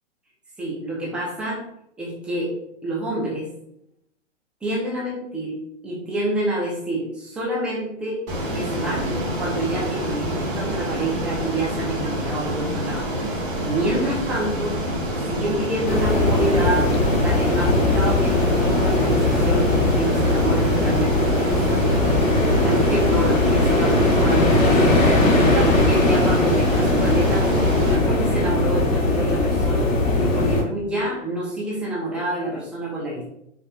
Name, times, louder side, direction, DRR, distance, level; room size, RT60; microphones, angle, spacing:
voice 1, 0.6-1.6 2.0-2.5 2.8-3.5 4.6-5.6 5.8-8.2 8.5-13.1 13.6-14.8 15.3-21.9 22.6-24.7 25.5-27.5 27.8-29.9 30.2-33.3, right 1 dB, 5° right, -6 dB, 0.5 m, -28 dB
Ocean, 8.3-27.9, equal, 45° right, 1.3 m, -27 dB
sound 1, 15.9-30.6, left 2 dB, 85° left, 1.1 m, -19 dB
4.3 x 3.2 x 2.2 m, 0.77 s
hypercardioid pair, 135°, 39 cm